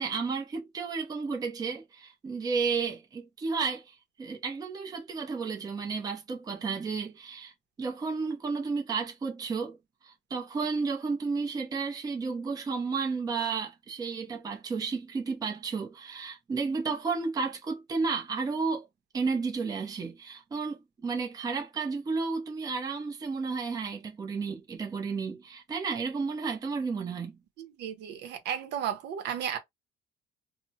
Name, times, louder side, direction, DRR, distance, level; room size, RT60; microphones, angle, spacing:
voice 1, 0.0-7.5 7.8-9.8 10.0-18.9 19.1-27.3, right 4 dB, 20° right, 0.6 m, -32 dB
voice 2, 27.6-29.6, right 9 dB, 75° right, 0.7 m, -34 dB
2.8 x 2.0 x 2.7 m
cardioid pair, 160°, 18 cm